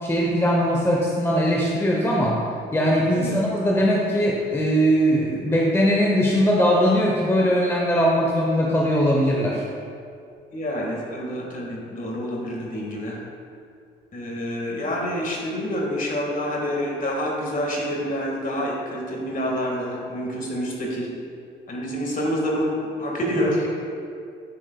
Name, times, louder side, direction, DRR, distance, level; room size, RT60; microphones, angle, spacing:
voice 1, 0.0-2.4 2.7-9.6, equal, 10° left, -2 dB, 0.8 m, -20 dB
voice 2, 10.5-13.2 14.1-21.1 21.7-23.7, equal, 45° left, -2 dB, 1.7 m, -27 dB
10.0 x 6.3 x 2.3 m, 2.3 s
cardioid pair, 90°, 20 cm